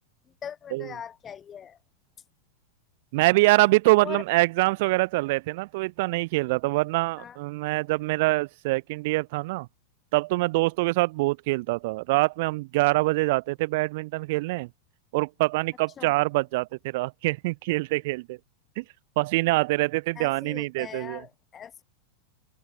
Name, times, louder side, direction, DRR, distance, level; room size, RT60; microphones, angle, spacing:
voice 1, 0.4-1.8 4.0-4.2 7.2-7.4 16.0-16.2 20.2-21.8, left 8 dB, 25° left, 3.6 m, -40 dB
voice 2, 3.1-9.7 10.1-14.7 15.1-18.4 18.8-18.9 19.2-21.2, right 22 dB, 50° right, 2.9 m, -24 dB
figure-of-eight pair, 90°, 0 cm